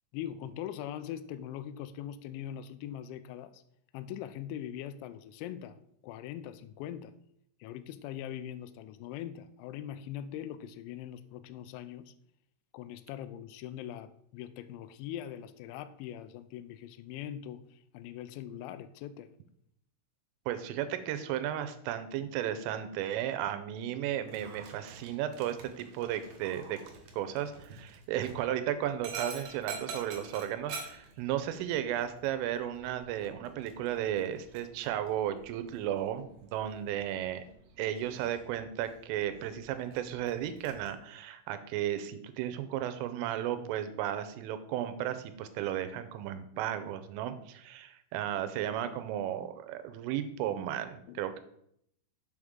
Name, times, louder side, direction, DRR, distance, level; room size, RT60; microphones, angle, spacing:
voice 1, 0.1-3.6 3.9-5.8 6.0-7.1 7.6-12.1 12.7-19.3 51.1-51.2, left 10 dB, 85° left, 11 dB, 2.7 m, -42 dB
voice 2, 20.5-26.8 27.1-37.4 37.8-51.4, right 11 dB, 90° right, 11 dB, 3.3 m, -34 dB
Dog, 24.2-40.9, right 5 dB, 70° right, 2.5 m, -48 dB
7.3 x 6.4 x 3.6 m, 0.72 s
omnidirectional pair, 5.6 m